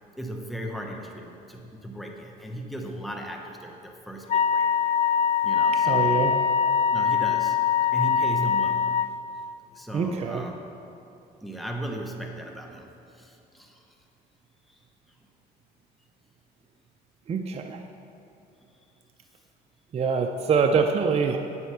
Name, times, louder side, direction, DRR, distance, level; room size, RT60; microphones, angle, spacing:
voice 1, 0.2-4.7 5.4-6.2 6.9-7.6 7.9-8.9 9.7-10.6 11.4-13.8 14.7-14.8, right 1 dB, ahead, 1 dB, 1.0 m, -37 dB
Wind instrument woodwind instrument, 4.3-9.1, left 7 dB, 40° left, 0.4 m, -23 dB
voice 2, 5.8-6.3 9.9-10.5 17.3-17.8 19.9-21.4, right 5 dB, 40° right, 4 dB, 0.6 m, -24 dB
9.3 x 8.1 x 5.7 m, 2.9 s
cardioid pair, 110°, 17 cm